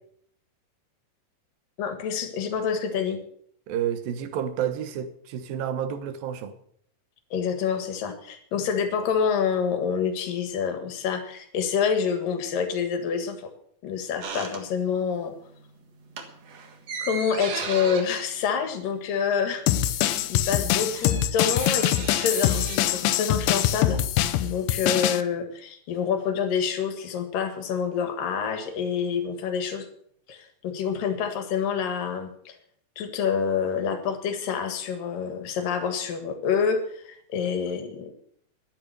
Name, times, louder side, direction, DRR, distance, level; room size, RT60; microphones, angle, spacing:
voice 1, 1.8-3.2 7.3-13.5 13.8-15.3 17.0-19.6 20.3-24.0 24.4-29.9 30.3-32.5 33.0-38.1, left 6 dB, 70° left, 7 dB, 3.3 m, -27 dB
voice 2, 3.7-6.5, right 9 dB, 75° right, 10 dB, 2.8 m, -30 dB
sound 1, 14.2-15.2 15.5-15.7 16.0-19.5 19.8-19.9 20.1-22.8, right 5 dB, 50° right, 2.5 m, -37 dB
sound 2, 19.7-25.2, left 12 dB, 85° left, 2.6 m, -24 dB
12.0 x 10.5 x 6.6 m, 0.64 s
omnidirectional pair, 4.2 m